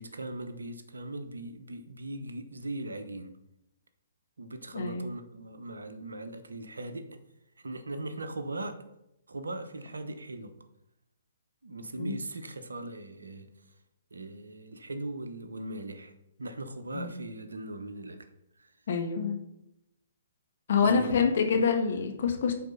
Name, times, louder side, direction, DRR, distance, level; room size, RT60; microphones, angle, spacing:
voice 1, 0.0-3.4 4.4-7.1 7.6-8.8 9.3-10.5 11.6-13.5 14.1-16.1 16.4-18.3 18.6-18.7 20.8-21.1 21.5-21.6, right 2 dB, 80° right, 9 dB, 1.0 m, -39 dB
voice 2, 4.7-5.1 12.0-12.2 16.9-17.1 18.9-19.4 20.7-22.5, left 6 dB, 55° left, 4 dB, 1.5 m, -26 dB
9.5 x 4.3 x 5.8 m, 0.85 s
figure-of-eight pair, 125°, 0 cm